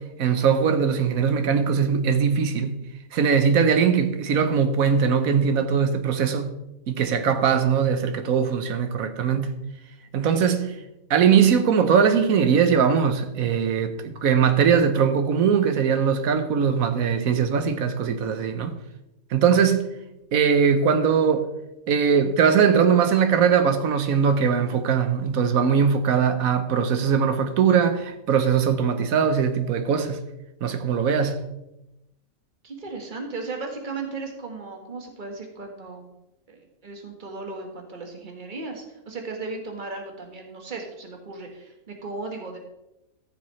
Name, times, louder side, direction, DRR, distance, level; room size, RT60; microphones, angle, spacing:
voice 1, 0.0-2.8 3.1-6.5 6.9-9.6 10.1-10.8 11.1-18.8 19.3-19.9 20.3-21.5 21.9-30.2 30.6-31.5, right 7 dB, 75° right, 1.3 m, -21 dB
voice 2, 32.6-36.1 36.5-42.6, right 3 dB, 35° right, 1.6 m, -36 dB
14.5 x 6.9 x 3.2 m
omnidirectional pair, 1.5 m